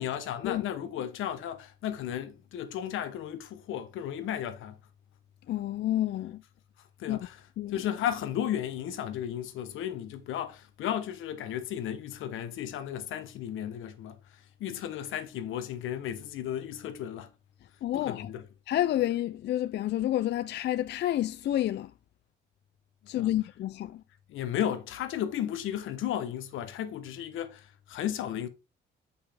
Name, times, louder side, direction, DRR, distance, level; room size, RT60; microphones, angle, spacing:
voice 1, 0.0-4.8 7.0-7.4 7.7-14.2 14.6-17.3 17.9-18.4 23.2-23.3 24.3-28.5, left 10 dB, 85° left, 1.0 m, -34 dB
voice 2, 5.5-6.4 7.1-7.2 7.6-7.8 17.8-18.3 18.7-21.9 23.1-24.0, left 13 dB, 60° left, 0.4 m, -29 dB
6.9 x 5.5 x 3.4 m
cardioid pair, 90°, 20 cm